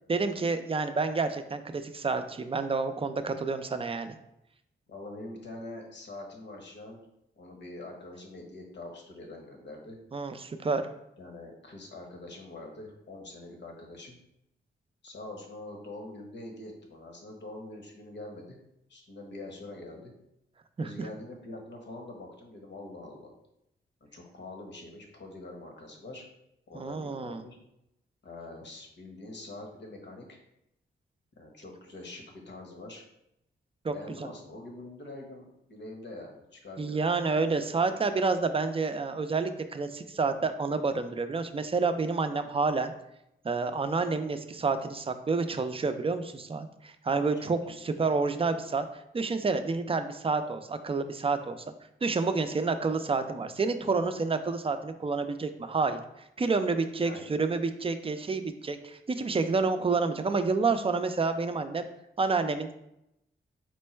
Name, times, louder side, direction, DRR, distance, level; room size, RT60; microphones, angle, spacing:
voice 1, 0.1-4.2 10.1-10.8 20.8-21.1 26.7-27.4 33.8-33.9 36.8-42.9 43.4-48.9 49.1-51.6 52.0-56.0 56.4-61.9 62.2-62.7, right 4 dB, 25° right, 8 dB, 0.4 m, -29 dB
voice 2, 4.9-7.0 7.4-10.0 11.2-14.2 15.0-18.6 18.9-20.1 20.8-23.3 24.1-26.2 26.7-27.6 28.2-30.4 31.4-33.0 33.9-37.0 47.1-48.0 48.6-48.8 57.0-57.3, left 2 dB, 60° left, 1 dB, 1.1 m, -44 dB
4.4 x 2.2 x 4.4 m, 0.82 s
cardioid pair, 65°, 21 cm